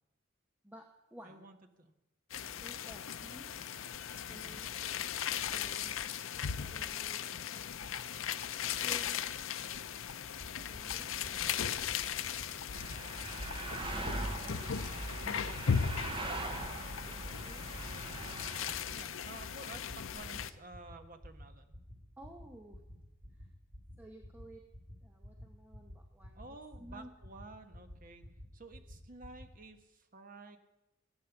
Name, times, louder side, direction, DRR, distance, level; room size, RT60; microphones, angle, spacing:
voice 1, 0.6-1.5 2.6-3.6 4.3-4.7 5.5-6.0 6.6-7.3 7.5-8.6 8.8-9.2 10.5-11.7 17.0-17.2 17.4-17.7 22.2-22.8 23.4-23.5 24.0-24.6 25.0-26.4 26.8-27.1, right 1 dB, 10° right, 2 dB, 1.0 m, -54 dB
voice 2, 1.2-1.9 4.3-4.6 11.3-11.5 14.3-16.3 18.8-21.7 22.9-23.0 26.3-28.2 28.5-30.6, right 2 dB, 45° right, 7 dB, 1.2 m, -53 dB
sound 1, 2.3-20.5, left 8 dB, 85° left, 0.6 m, -38 dB
sound 2, 10.4-10.5 10.7-11.0 11.2-11.5 11.7-11.9 12.2-12.4 12.7-12.9 13.2-13.4 13.7-13.9 14.2-14.4 14.7-14.9 15.2-15.4 15.7-15.9 16.2-16.4 16.7-16.9 17.2-17.4 17.7-17.9 18.2-18.4 18.7-18.9 19.2-19.4 19.7-19.9 20.2-20.4 20.7-20.9 21.2-21.4 21.7-21.9 22.2-22.4 22.7-22.9 23.2-23.4 23.7-23.9 24.2-24.4 24.7-24.9 25.2-25.4 25.7-25.9 26.2-26.4 26.7-26.9 27.2-27.4 27.7-27.9 28.2-28.4 28.7-28.9 29.2-29.4, equal, 80° right, 5.3 m, -49 dB
sound 3, 12.7-18.7, right 2 dB, 25° right, 0.9 m, -41 dB
15.5 x 9.6 x 7.1 m, 0.95 s
head